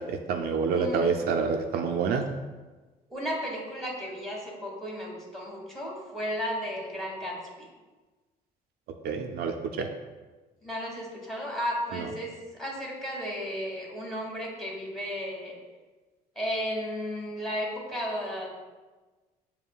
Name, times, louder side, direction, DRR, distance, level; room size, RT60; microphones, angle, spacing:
voice 1, 0.0-2.2 9.0-9.9 11.9-12.1, right 5 dB, 65° right, 4 dB, 0.4 m, -28 dB
voice 2, 0.7-1.1 3.1-7.7 10.6-15.5 16.4-18.5, equal, ahead, -2 dB, 1.2 m, -34 dB
6.7 x 2.8 x 2.3 m, 1.3 s
cardioid pair, 110°, 17 cm